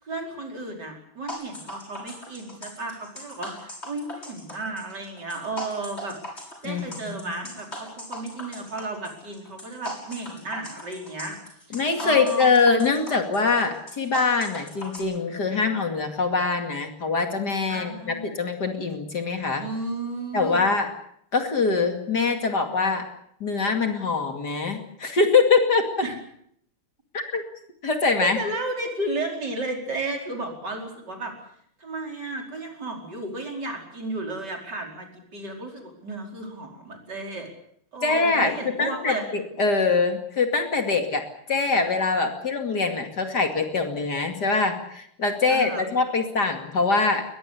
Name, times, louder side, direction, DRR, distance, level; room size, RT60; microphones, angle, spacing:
voice 1, 0.0-6.2 6.6-11.4 11.7-12.5 17.7-18.3 19.5-20.7 26.0-26.1 28.2-31.3 31.8-37.5 37.9-39.3 45.5-45.8, right 2 dB, 50° right, 2 dB, 5.5 m, -33 dB
sound 1, 1.3-15.0, left 1 dB, 30° left, 7.4 m, -38 dB
voice 2, 6.6-7.2 11.7-19.6 20.3-20.9 21.3-23.1 23.4-25.8 27.1-27.4 27.8-28.4 38.0-38.5 38.8-47.2, left 4 dB, 50° left, 5 dB, 2.8 m, -23 dB
22.0 x 21.0 x 8.3 m, 0.69 s
omnidirectional pair, 2.4 m